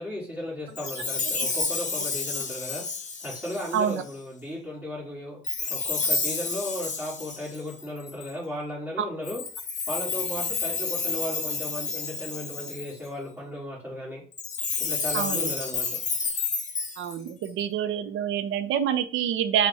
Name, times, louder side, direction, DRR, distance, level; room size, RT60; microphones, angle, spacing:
voice 1, 0.0-2.8 3.2-5.4 5.7-9.4 9.9-14.2 14.8-15.9, left 1 dB, 10° right, -6 dB, 1.8 m, -35 dB
Chime, 0.7-4.1 5.4-8.3 9.2-13.1 14.3-17.5, left 4 dB, 40° left, 0.8 m, -30 dB
voice 2, 3.7-4.0 15.1-15.5 17.0-19.7, right 9 dB, 80° right, 10 dB, 0.5 m, -27 dB
4.5 x 2.2 x 4.1 m, 0.41 s
cardioid pair, 90°, 20 cm